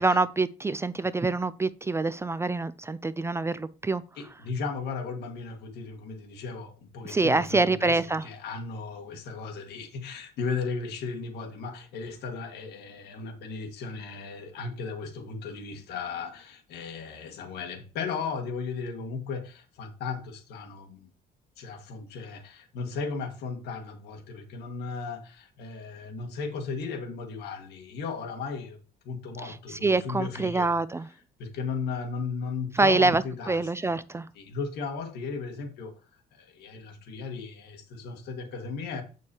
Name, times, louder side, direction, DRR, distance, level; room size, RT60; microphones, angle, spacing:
voice 1, 0.0-4.0 7.0-8.2 29.5-31.1 32.7-34.3, right 3 dB, 15° right, 0.4 m, -26 dB
voice 2, 4.2-21.1 21.6-28.8 29.1-30.7 31.4-33.7 34.4-36.0 36.3-39.0, left 4 dB, 75° left, 1.9 m, -36 dB
8.2 x 6.4 x 2.9 m
cardioid pair, 110°, 17 cm